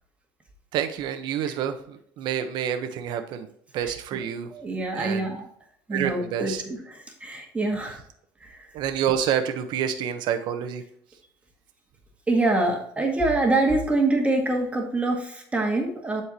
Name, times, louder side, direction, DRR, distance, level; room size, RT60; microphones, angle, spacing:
voice 1, 0.7-3.5 3.7-4.5 4.9-5.3 5.9-6.6 8.7-10.8, right 9 dB, 65° right, 8 dB, 1.0 m, -28 dB
voice 2, 3.8-4.2 4.5-5.5 5.9-8.0 8.4-8.7 12.3-16.2, right 2 dB, 15° right, 1 dB, 1.7 m, -25 dB
11.5 x 4.6 x 3.0 m, 0.68 s
cardioid pair, 115°, 8 cm